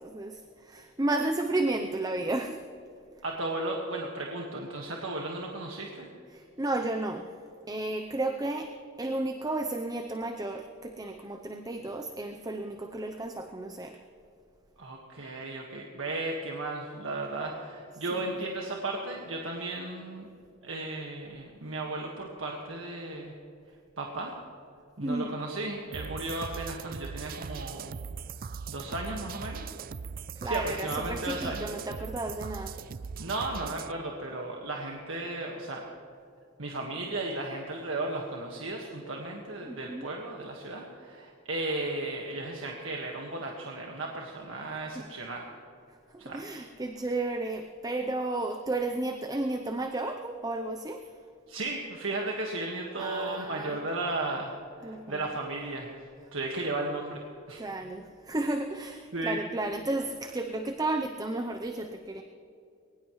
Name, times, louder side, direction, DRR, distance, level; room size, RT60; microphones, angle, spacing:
voice 1, 0.0-2.6 6.3-7.3 7.7-8.7 9.0-14.0 18.1-18.2 25.0-25.4 30.4-32.8 39.6-40.1 44.9-45.0 46.1-51.0 53.0-53.7 54.8-55.2 57.6-62.2, right 2 dB, 20° right, 5 dB, 0.7 m, -33 dB
voice 2, 3.2-6.1 14.8-20.3 20.6-23.3 24.0-24.3 25.0-28.0 28.7-29.8 30.4-31.7 33.2-35.8 36.6-45.5 46.2-46.4 51.5-57.6 59.1-59.4, right 2 dB, 85° right, -1 dB, 1.7 m, -35 dB
sound 1, 25.9-33.9, right 5 dB, 45° right, 0.4 m, -40 dB
22.0 x 19.0 x 3.2 m, 2.6 s
head